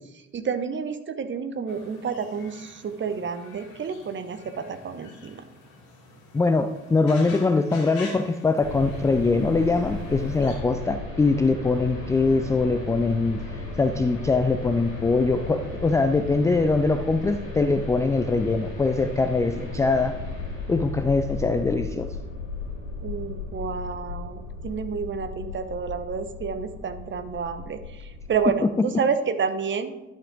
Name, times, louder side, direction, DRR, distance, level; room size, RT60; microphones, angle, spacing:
voice 1, 0.3-5.4 23.0-30.0, right 6 dB, 30° right, 11 dB, 0.8 m, -29 dB
sound 1, 1.7-10.6, left 3 dB, 60° left, 2.3 m, -47 dB
voice 2, 6.3-20.2 20.7-22.1, left 3 dB, 10° left, 8 dB, 0.3 m, -23 dB
sound 2, 8.6-28.5, left 3 dB, 90° left, 1.7 m, -35 dB
11.5 x 5.5 x 3.8 m, 1.0 s
figure-of-eight pair, 50°, 40 cm